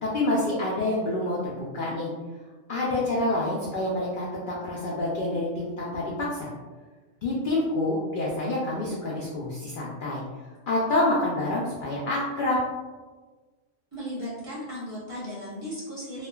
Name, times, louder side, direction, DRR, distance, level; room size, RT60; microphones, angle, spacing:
voice 1, 0.0-2.1 2.7-6.5 7.2-10.2 10.7-12.6, left 2 dB, 65° left, -5 dB, 0.5 m, -27 dB
voice 2, 13.9-16.3, equal, 30° right, -9 dB, 0.8 m, -36 dB
3.2 x 2.1 x 2.2 m, 1.3 s
omnidirectional pair, 1.3 m